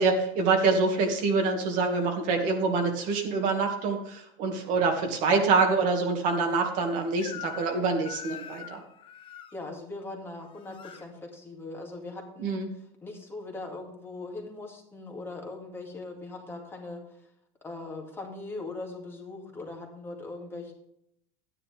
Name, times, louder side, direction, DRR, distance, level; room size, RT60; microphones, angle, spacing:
voice 1, 0.0-8.8 12.4-12.7, right 4 dB, 55° right, 3 dB, 2.2 m, -26 dB
Crying sobbing / Screech, 7.2-7.8 8.0-9.5 10.4-11.0, left 9 dB, 30° left, 1.0 m, -42 dB
voice 2, 9.5-17.2 17.6-20.7, left 2 dB, 15° left, 1 dB, 2.1 m, -40 dB
11.5 x 9.9 x 3.5 m, 0.72 s
cardioid pair, 150°, 16 cm